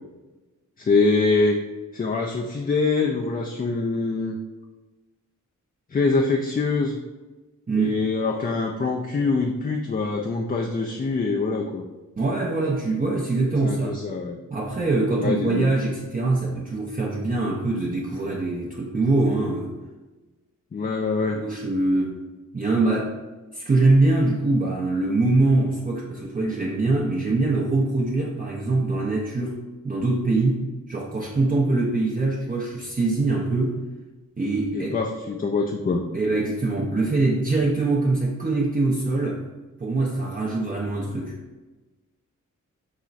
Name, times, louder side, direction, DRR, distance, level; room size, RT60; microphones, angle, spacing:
voice 1, 0.8-1.6 1.9-4.4 5.9-7.0 7.8-11.8 13.6-14.4 15.2-15.7 20.7-21.4 34.7-36.0, left 3 dB, 30° left, 2 dB, 0.4 m, -24 dB
voice 2, 7.7-8.0 12.2-14.0 14.5-19.8 21.3-22.2 22.5-23.1 23.5-33.8 34.4-35.0 36.1-39.4 39.8-41.3, right 2 dB, 25° right, -4 dB, 0.6 m, -23 dB
5.5 x 2.9 x 2.5 m, 1.2 s
wide cardioid pair, 90°, 31 cm